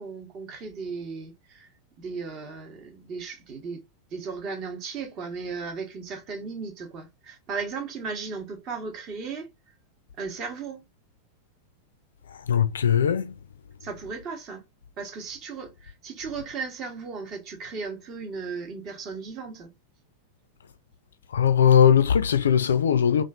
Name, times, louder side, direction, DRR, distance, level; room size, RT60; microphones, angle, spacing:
voice 1, 0.0-1.7 2.0-3.8 4.1-9.5 10.2-10.8 13.8-14.6 15.0-19.7, right 5 dB, 35° right, 1.0 m, -36 dB
voice 2, 12.5-13.3 21.3-23.2, left 8 dB, 65° left, 0.3 m, -19 dB
3.0 x 2.5 x 2.3 m
figure-of-eight pair, 90°, 0 cm